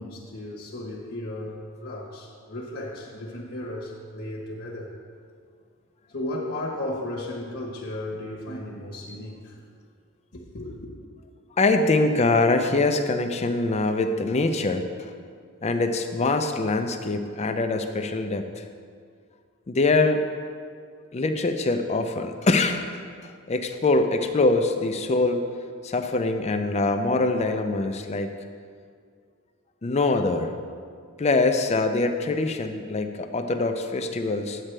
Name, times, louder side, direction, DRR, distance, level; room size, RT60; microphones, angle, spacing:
voice 1, 0.0-4.9 6.1-9.6 10.3-10.9, left 1 dB, 55° left, -4 dB, 1.1 m, -35 dB
voice 2, 11.6-15.1 15.6-18.6 19.7-20.2 21.1-22.8 23.2-25.4 25.8-28.3 29.8-30.5 31.2-34.6, left 3 dB, 30° left, 6 dB, 0.5 m, -23 dB
8.9 x 8.6 x 3.3 m, 2.1 s
head